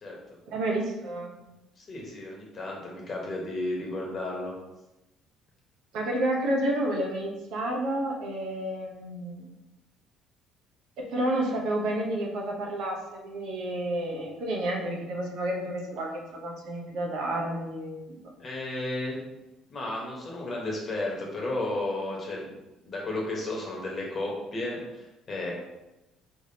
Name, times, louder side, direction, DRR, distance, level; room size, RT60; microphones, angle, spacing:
voice 1, 0.5-1.4 5.9-9.5 11.0-18.3, right 1 dB, 80° right, 0 dB, 0.9 m, -30 dB
voice 2, 1.8-4.5 18.4-19.2 19.7-22.5 22.8-25.5, left 2 dB, 35° left, -2 dB, 1.1 m, -33 dB
4.6 x 3.4 x 2.8 m, 1.0 s
cardioid pair, 120°, 0 cm